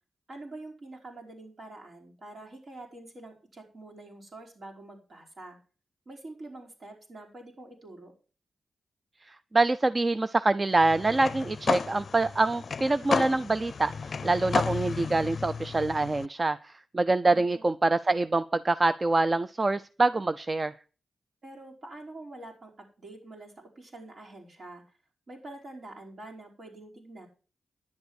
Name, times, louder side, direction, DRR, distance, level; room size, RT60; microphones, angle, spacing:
voice 1, 0.3-5.6 6.0-8.1 17.2-17.7 21.4-24.8 25.3-27.3, right 2 dB, 60° right, 0 dB, 5.0 m, -46 dB
voice 2, 9.5-20.7, right 2 dB, 35° right, 14 dB, 0.5 m, -25 dB
sound 1, 10.8-16.3, left 5 dB, 60° left, 0.5 m, -33 dB
10.5 x 7.9 x 6.4 m, 0.37 s
cardioid pair, 55°, 0 cm